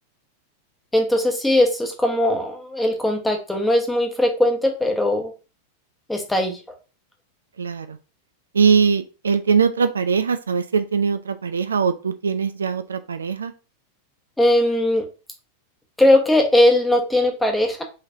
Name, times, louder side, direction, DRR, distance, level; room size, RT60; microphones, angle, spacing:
voice 1, 0.9-5.3 6.1-6.6 14.4-15.0 16.0-17.8, left 1 dB, 5° left, 2 dB, 1.0 m, -19 dB
voice 2, 7.6-8.0 8.5-13.5, right 6 dB, 70° right, 10 dB, 0.3 m, -21 dB
5.5 x 3.2 x 2.6 m, 0.32 s
figure-of-eight pair, 90°, 0 cm